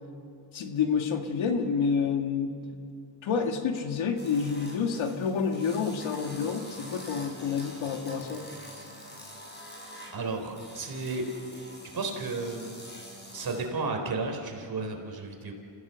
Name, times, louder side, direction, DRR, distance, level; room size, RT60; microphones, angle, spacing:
voice 1, 0.5-2.5 3.2-8.4, left 6 dB, 85° left, 4 dB, 2.0 m, -28 dB
sound 1, 4.2-13.7, equal, 20° left, 5.9 m, -46 dB
voice 2, 10.1-11.2 11.5-12.7 13.3-15.5, right 3 dB, 50° right, 3 dB, 4.0 m, -33 dB
29.5 x 16.0 x 7.1 m, 2.4 s
cardioid pair, 90°, 46 cm